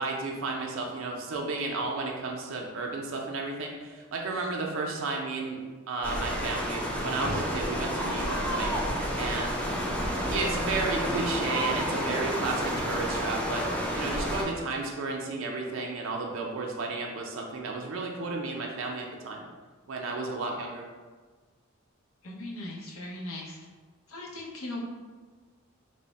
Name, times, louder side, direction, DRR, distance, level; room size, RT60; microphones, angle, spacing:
voice 1, 0.0-5.6 5.9-8.7 9.2-9.5 10.3-13.7 14.0-19.5 19.9-20.8, right 3 dB, 65° right, 0 dB, 0.4 m, -33 dB
sound 1, 6.0-14.4, equal, 5° left, 0.3 m, -30 dB
voice 2, 22.2-23.6 24.1-24.8, left 1 dB, 75° left, -2 dB, 0.7 m, -38 dB
3.3 x 2.0 x 3.9 m, 1.4 s
head